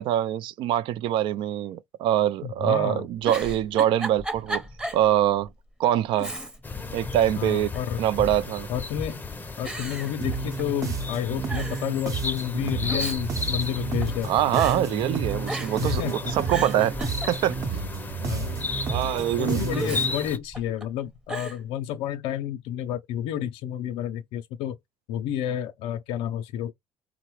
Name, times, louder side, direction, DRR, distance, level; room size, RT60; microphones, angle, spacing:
voice 1, 0.0-4.6 4.9-5.5 5.8-6.3 6.9-7.7 8.0-8.7 14.2-17.8 18.9-19.8, right 11 dB, 65° right, 0.3 m, -24 dB
voice 2, 2.4-3.1 7.4-8.0 8.7-9.2 9.6-14.3 15.8-16.3 18.2-18.7 19.4-24.8 25.1-26.7, left 10 dB, 75° left, 0.4 m, -30 dB
Giggle, 3.1-5.1 5.5-5.6 6.1-6.8 7.2-8.0 8.7-9.1 9.6-10.9 11.1-11.2 11.5-11.9 12.7-14.2 14.5-14.8 15.4-15.9 16.3-17.7 19.7-20.8 21.3-21.6, right 1 dB, 10° right, 0.8 m, -35 dB
sound 1, 6.6-20.4, left 3 dB, 20° left, 0.6 m, -35 dB
sound 2, 10.2-20.1, right 4 dB, 40° right, 0.8 m, -31 dB
3.8 x 2.0 x 2.9 m
supercardioid pair, 85°, 9 cm